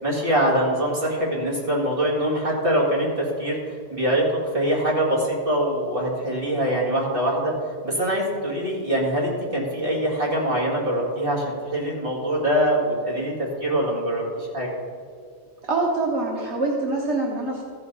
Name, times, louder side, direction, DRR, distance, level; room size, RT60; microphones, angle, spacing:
voice 1, 0.0-3.6 3.9-4.3 4.5-7.5 7.8-13.3 13.6-14.7, right 1 dB, 55° right, -4 dB, 2.6 m, -23 dB
voice 2, 15.6-17.6, right 2 dB, 85° right, -2 dB, 1.5 m, -25 dB
14.5 x 4.9 x 5.5 m, 2.1 s
omnidirectional pair, 1.1 m